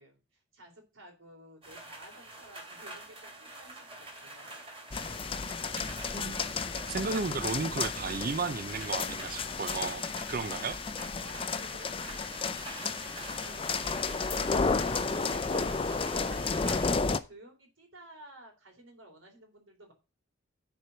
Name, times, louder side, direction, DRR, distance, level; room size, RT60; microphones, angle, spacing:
voice 1, 0.0-4.5 11.2-12.6 13.4-19.9, right 1 dB, 80° right, 3.4 m, -54 dB
sound 1, 1.6-17.0, right 2 dB, 30° right, 2.7 m, -46 dB
sound 2, 4.9-17.2, left 4 dB, 25° left, 0.5 m, -32 dB
voice 2, 6.9-10.8, right 4 dB, 45° right, 0.5 m, -34 dB
9.8 x 4.5 x 6.9 m
head